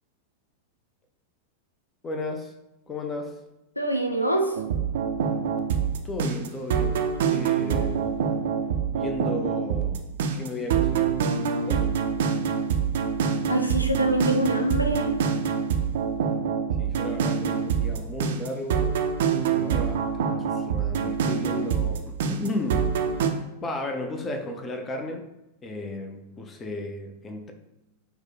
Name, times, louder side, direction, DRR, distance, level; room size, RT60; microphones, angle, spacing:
voice 1, 2.0-2.5 2.9-3.4 6.0-8.1 8.9-10.0 10.3-11.2 11.6-11.9 16.8-19.0 19.3-25.3 25.6-27.5, left 2 dB, 20° left, 0.5 m, -35 dB
voice 2, 3.8-4.6 13.5-15.1, right 1 dB, 85° left, 0.4 m, -24 dB
sound 1, 4.6-23.3, right 7 dB, 55° right, 0.4 m, -25 dB
4.4 x 2.2 x 4.2 m
figure-of-eight pair, 90°, 0 cm